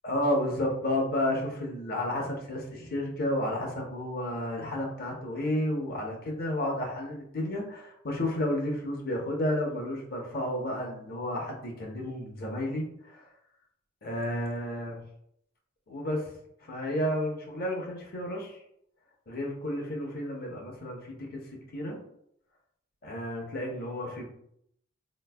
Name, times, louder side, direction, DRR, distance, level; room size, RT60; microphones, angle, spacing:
voice 1, 0.0-13.3 14.0-15.0 15.9-16.3 16.7-18.6 19.3-21.4 21.7-22.0 23.0-24.2, left 1 dB, 50° left, 0 dB, 0.8 m, -31 dB
4.1 x 3.0 x 2.2 m, 0.72 s
head